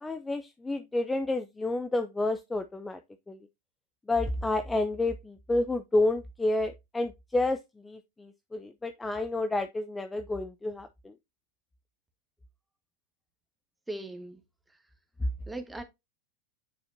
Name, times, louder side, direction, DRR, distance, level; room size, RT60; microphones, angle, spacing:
voice 1, 0.0-3.0 3.3-3.4 4.1-11.1, left 2 dB, 10° left, 0.5 m, -30 dB
voice 2, 13.9-14.4 15.5-15.8, right 2 dB, 5° right, 1.4 m, -38 dB
9.4 x 4.1 x 2.7 m
hypercardioid pair, 105°, 0 cm